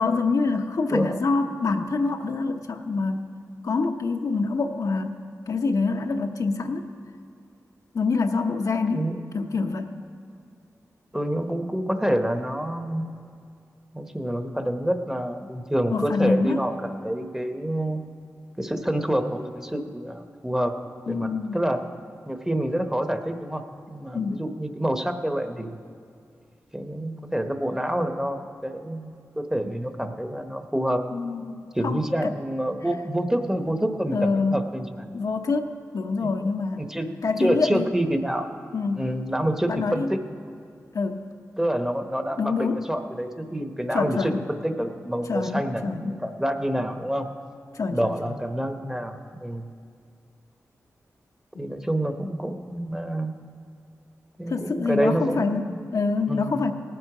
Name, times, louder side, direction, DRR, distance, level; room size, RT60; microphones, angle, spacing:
voice 1, 0.0-3.3 3.6-5.1 5.5-6.9 7.9-10.0 15.9-16.6 21.1-21.6 24.1-24.4 31.1-32.3 34.1-34.6 35.1-36.8 37.2-37.9 38.7-39.0 39.7-40.2 40.9-41.3 42.4-42.8 43.9-44.4 45.3-46.2 47.7-48.4 51.5-51.6 54.5-56.7, left 4 dB, 70° left, 4 dB, 0.8 m, -26 dB
voice 2, 0.9-1.2 8.9-9.2 11.1-13.1 13.9-18.0 18.6-20.7 21.1-21.8 22.3-25.8 26.7-31.0 31.7-35.1 36.4-36.5 36.9-37.1 37.4-38.6 38.9-40.2 41.6-44.3 44.6-47.3 47.9-49.7 51.6-53.3 54.4-55.8 56.3-56.6, right 1 dB, 10° right, 6 dB, 0.9 m, -27 dB
18.0 x 7.9 x 4.9 m, 2.4 s
cardioid pair, 55°, 6 cm